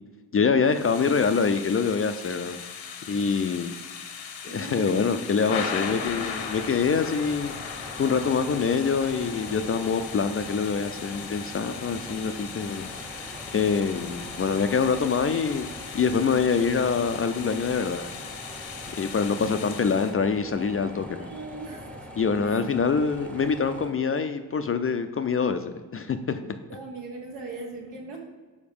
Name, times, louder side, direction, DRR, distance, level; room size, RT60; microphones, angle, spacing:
voice 1, 0.3-2.6 3.1-3.8 4.4-15.7 15.9-18.1 19.0-21.3 22.2-26.6, left 5 dB, 30° left, 9 dB, 0.3 m, -25 dB
Thunder / Rain, 0.6-20.1, left 7 dB, 70° left, 0.9 m, -38 dB
voice 2, 4.5-6.2 21.2-22.1 22.4-22.6 26.7-28.2, right 3 dB, 80° right, 0 dB, 1.4 m, -40 dB
sound 1, 5.8-23.9, equal, ahead, 0.7 m, -42 dB
5.0 x 4.1 x 5.2 m, 1.3 s
supercardioid pair, 60°, 48 cm